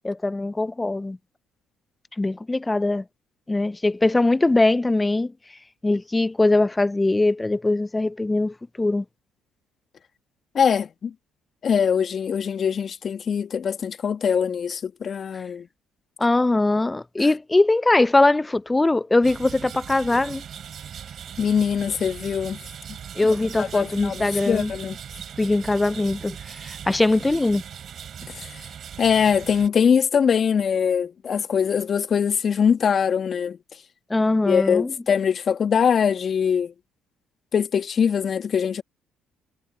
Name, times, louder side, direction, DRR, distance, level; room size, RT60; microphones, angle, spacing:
voice 1, 0.0-1.2 2.2-3.0 3.5-5.3 5.8-9.0 16.2-20.4 23.2-24.7 25.4-27.6 34.1-34.9, left 2 dB, 20° left, 0.8 m, -21 dB
voice 2, 10.5-11.1 11.6-15.7 21.4-22.6 23.6-25.0 28.4-28.5 29.0-33.6 34.5-36.7 37.5-38.8, left 7 dB, 50° left, 1.7 m, -22 dB
sound 1, 19.2-29.7, right 8 dB, 55° right, 4.9 m, -39 dB
hypercardioid pair, 55°, 0 cm